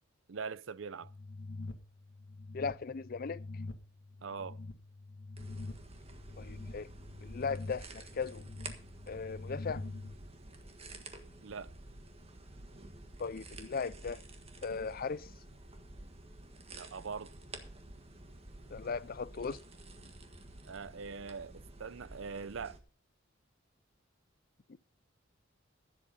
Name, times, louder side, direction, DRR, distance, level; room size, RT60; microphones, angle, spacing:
voice 1, 0.3-1.1 4.2-4.6 11.4-11.7 16.7-17.3 20.7-22.8, right 5 dB, 75° right, 0.6 m, -42 dB
sound 1, 1.0-10.2, left 2 dB, 90° left, 1.5 m, -45 dB
voice 2, 2.5-3.4 6.4-6.9 7.2-8.4 9.1-9.8 13.2-14.2 14.6-15.3 18.7-19.6 24.7-24.8, left 5 dB, 45° left, 0.5 m, -37 dB
sound 2, 5.4-22.8, right 2 dB, 30° right, 1.5 m, -51 dB
15.0 x 7.7 x 5.2 m
head